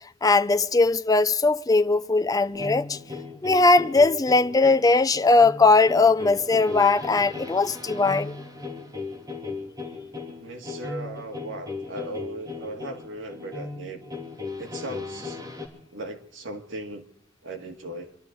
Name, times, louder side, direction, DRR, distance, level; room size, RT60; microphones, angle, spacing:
voice 1, 0.2-3.0 3.4-8.3, left 3 dB, 20° left, 0.5 m, -19 dB
sound 1, 2.5-15.7, left 4 dB, 20° right, 2.9 m, -37 dB
voice 2, 10.4-14.1 14.6-15.4 15.9-17.1 17.4-18.2, right 2 dB, 80° right, 2.0 m, -37 dB
27.0 x 12.0 x 3.9 m
head